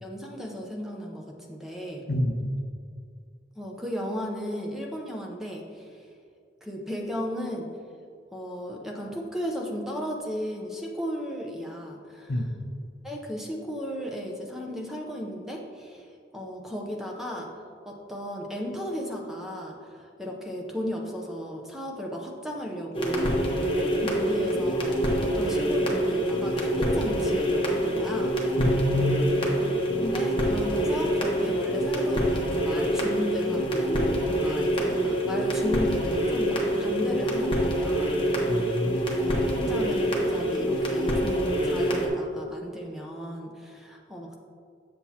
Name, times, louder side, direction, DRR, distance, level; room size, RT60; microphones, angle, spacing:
voice 1, 0.0-2.1 3.6-6.0 6.6-7.8 8.3-12.3 13.0-28.4 29.9-38.7 39.2-44.4, equal, ahead, 0 dB, 0.6 m, -35 dB
voice 2, 2.1-2.5 12.3-12.6 28.6-29.2 38.5-39.1, left 1 dB, 55° left, 4 dB, 0.6 m, -27 dB
sound 1, 22.9-42.1, equal, 30° left, 1.0 m, -26 dB
7.5 x 7.2 x 2.8 m, 2.3 s
head